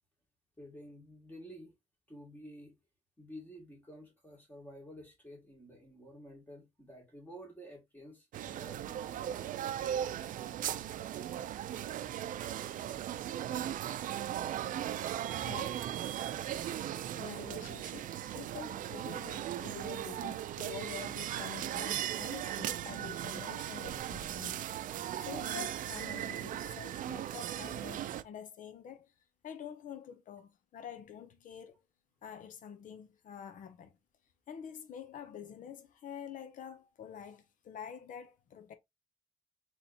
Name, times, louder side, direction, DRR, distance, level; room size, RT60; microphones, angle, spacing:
voice 1, 0.6-1.7 2.1-2.7 3.2-9.5, equal, 15° left, 2.5 m, -51 dB
sound 1, 8.3-28.2, right 11 dB, 85° right, 0.4 m, -38 dB
voice 2, 15.4-15.9 17.2-24.6 25.2-29.1 29.4-31.8 32.2-34.0 34.5-38.7, left 8 dB, 80° left, 0.8 m, -47 dB
4.1 x 3.1 x 4.1 m
wide cardioid pair, 135°, 13 cm